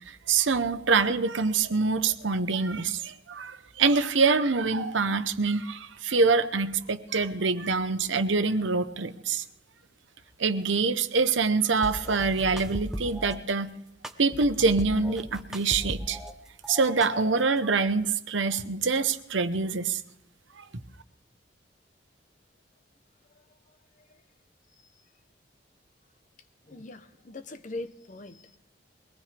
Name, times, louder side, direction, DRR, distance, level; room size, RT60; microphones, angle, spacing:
voice 1, 0.1-9.4 10.4-13.7 14.2-16.2 16.7-20.0 20.6-20.7, right 4 dB, 90° right, 0.9 m, -25 dB
sound 1, 11.8-13.4 14.0-16.3 16.6-17.6, equal, 5° right, 0.9 m, -37 dB
voice 2, 26.6-28.6, left 2 dB, 45° left, 0.9 m, -41 dB
22.5 x 18.5 x 3.4 m
head